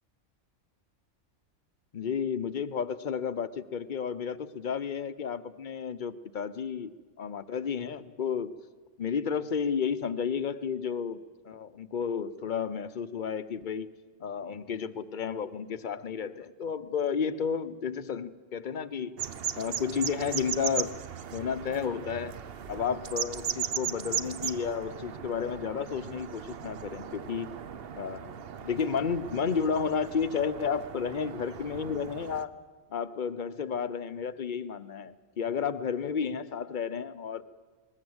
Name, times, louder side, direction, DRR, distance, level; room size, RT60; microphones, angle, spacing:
voice 1, 1.9-6.9 7.2-8.5 9.0-11.2 11.4-13.9 14.2-19.2 19.6-21.0 21.3-22.3 22.7-27.5 27.9-32.5 32.9-37.4, left 6 dB, 45° left, 14 dB, 0.9 m, -32 dB
sound 1, 19.2-32.4, right 8 dB, 55° right, 1.0 m, -38 dB
21.0 x 20.0 x 8.0 m, 1.4 s
omnidirectional pair, 1.2 m